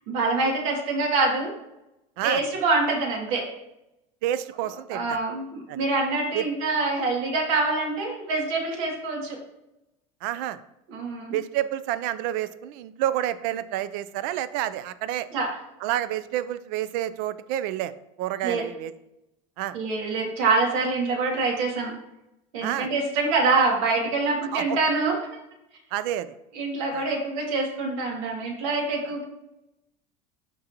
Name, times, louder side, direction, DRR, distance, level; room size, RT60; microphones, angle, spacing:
voice 1, 0.1-1.5 2.2-3.4 4.9-9.4 10.9-11.4 15.3-15.5 18.4-18.6 19.7-21.9 22.5-25.3 26.5-29.2, right 3 dB, 85° right, -1 dB, 2.3 m, -25 dB
voice 2, 4.2-5.2 5.7-5.8 6.3-6.5 10.2-10.6 11.3-15.3 15.8-17.9 18.2-18.9 19.6-19.8 22.6-22.9 24.5-24.8 25.9-26.3 26.9-27.0, right 12 dB, 60° right, 15 dB, 0.5 m, -29 dB
11.5 x 3.9 x 2.9 m, 0.87 s
cardioid pair, 155°, 17 cm